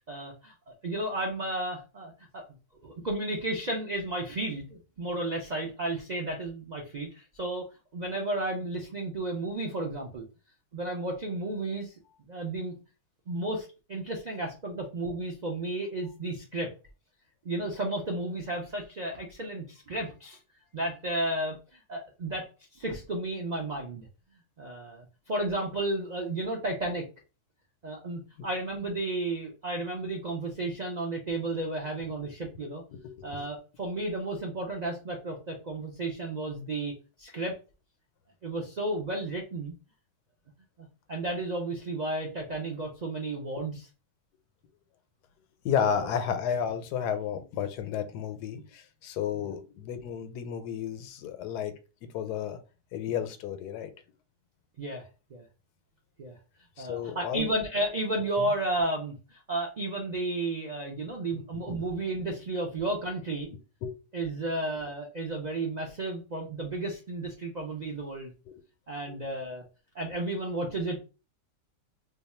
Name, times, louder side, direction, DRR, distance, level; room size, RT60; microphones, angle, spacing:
voice 1, 0.0-2.4 2.8-7.6 7.9-10.2 10.7-12.0 12.3-12.7 13.3-16.7 17.4-20.4 20.7-24.1 24.6-27.0 27.8-32.8 33.2-36.9 37.2-37.6 38.4-39.7 41.1-43.9 45.8-46.1 49.3-49.5 54.8-55.4 56.2-56.4 56.8-63.5 64.1-68.3 68.9-69.6 69.9-71.0, right 2 dB, 65° right, 0.4 m, -33 dB
voice 2, 32.9-33.5 45.6-51.7 52.1-52.6 52.9-53.9 56.8-57.5 58.4-58.5 61.3-61.4 61.7-61.8 63.8-63.9 68.5-68.6, left 8 dB, 85° left, 1.2 m, -32 dB
2.8 x 2.3 x 4.1 m
omnidirectional pair, 1.7 m